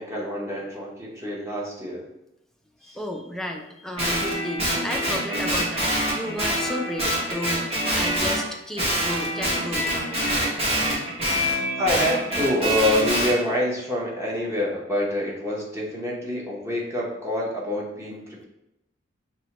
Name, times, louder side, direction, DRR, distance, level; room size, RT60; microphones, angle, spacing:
voice 1, 0.0-2.1 2.8-3.0 11.8-18.4, left 1 dB, 15° right, -4 dB, 0.8 m, -26 dB
voice 2, 2.8-10.1, left 1 dB, ahead, 2 dB, 0.4 m, -33 dB
Guitar, 4.0-8.4 8.8-13.3, equal, 30° right, 1.3 m, -25 dB
5.9 x 2.2 x 2.9 m, 0.89 s
head